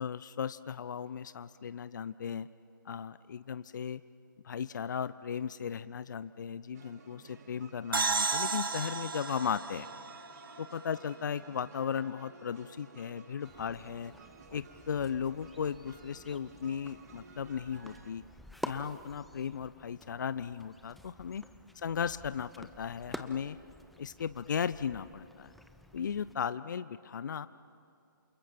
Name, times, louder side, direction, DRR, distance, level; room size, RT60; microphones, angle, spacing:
voice 1, 0.0-2.5 2.8-4.0 4.4-9.9 10.6-14.1 14.5-18.2 18.6-21.4 21.8-23.6 24.0-25.5 25.9-27.5, left 7 dB, 60° left, 15 dB, 0.6 m, -36 dB
sound 1, 6.7-18.1, right 5 dB, 50° right, 2.3 m, -55 dB
sound 2, 7.9-11.5, right 4 dB, 80° right, 1.1 m, -34 dB
sound 3, 13.4-26.3, left 1 dB, ahead, 0.6 m, -49 dB
28.0 x 28.0 x 6.0 m, 2.5 s
figure-of-eight pair, 140°, 11 cm